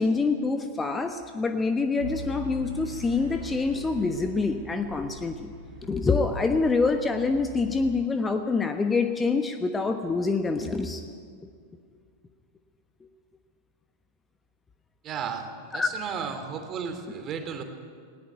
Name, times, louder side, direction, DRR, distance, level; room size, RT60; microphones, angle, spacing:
voice 1, 0.0-5.5 5.8-11.0 11.4-11.5 15.7-15.9, left 4 dB, 15° left, 7 dB, 1.1 m, -26 dB
sound 1, 2.0-7.9, left 1 dB, 60° right, 3.6 m, -41 dB
voice 2, 15.0-17.6, right 6 dB, 30° right, 7 dB, 2.7 m, -34 dB
19.0 x 18.0 x 9.3 m, 2.1 s
figure-of-eight pair, 90°, 0 cm